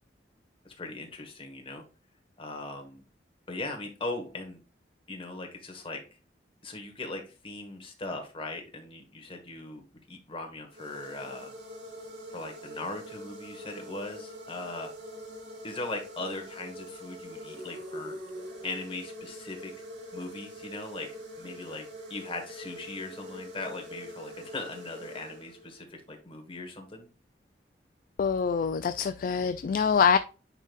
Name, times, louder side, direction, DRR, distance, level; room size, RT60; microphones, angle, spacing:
voice 1, 0.6-1.8 2.4-3.0 3.5-4.6 5.1-6.0 6.6-11.5 12.3-14.9 15.6-18.1 18.6-19.7 20.1-21.1 21.4-27.1, left 2 dB, 30° left, 3 dB, 1.5 m, -39 dB
sound 1, 10.7-25.9, equal, 70° right, 1.8 m, -44 dB
voice 2, 28.2-30.2, left 6 dB, 50° left, 11 dB, 0.3 m, -25 dB
9.9 x 3.9 x 2.5 m, 0.34 s
head